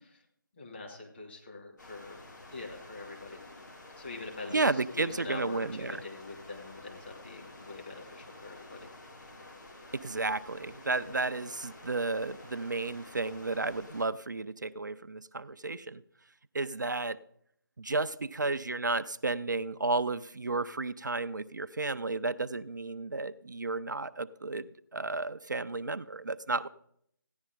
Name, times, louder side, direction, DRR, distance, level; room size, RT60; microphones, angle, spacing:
voice 1, 0.6-2.2 2.5-3.4 4.0-8.9 10.9-11.1, left 3 dB, 30° left, -1 dB, 2.9 m, -44 dB
sound 1, 1.8-14.1, left 2 dB, 55° left, 3.2 m, -50 dB
voice 2, 4.5-6.0 9.9-16.0 16.5-17.2 17.8-24.7 24.9-26.7, right 3 dB, 55° right, 12 dB, 0.5 m, -32 dB
15.5 x 10.5 x 3.8 m, 0.68 s
figure-of-eight pair, 155°, 12 cm